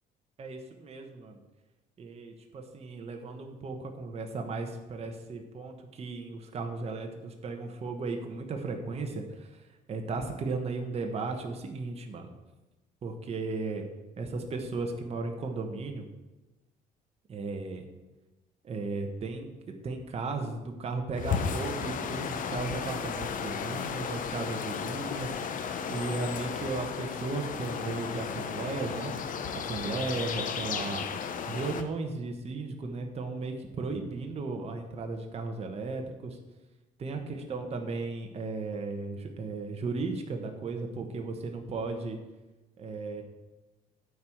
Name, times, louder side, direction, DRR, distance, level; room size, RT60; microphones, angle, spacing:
voice 1, 0.4-1.4 2.0-12.3 13.0-13.9 14.2-16.1 17.3-17.8 18.6-29.1 29.5-31.0 31.5-36.4 37.0-42.2 42.8-43.2, right 3 dB, 35° right, 3 dB, 1.1 m, -35 dB
sound 1, 21.1-31.8, left 6 dB, 50° left, 0.8 m, -34 dB
9.4 x 4.6 x 7.7 m, 1.1 s
cardioid pair, 110°, 17 cm